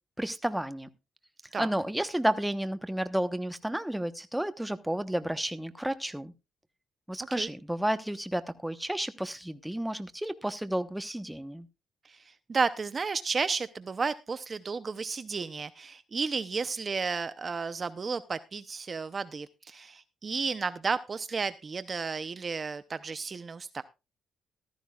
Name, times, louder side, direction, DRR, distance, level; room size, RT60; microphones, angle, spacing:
voice 1, 0.2-0.9 1.6-6.3 7.1-11.7, right 1 dB, 5° right, 10 dB, 1.1 m, -31 dB
voice 2, 12.0-23.8, right 4 dB, 35° right, 13 dB, 0.7 m, -32 dB
14.5 x 13.5 x 2.4 m, 0.27 s
cardioid pair, 90°, 0 cm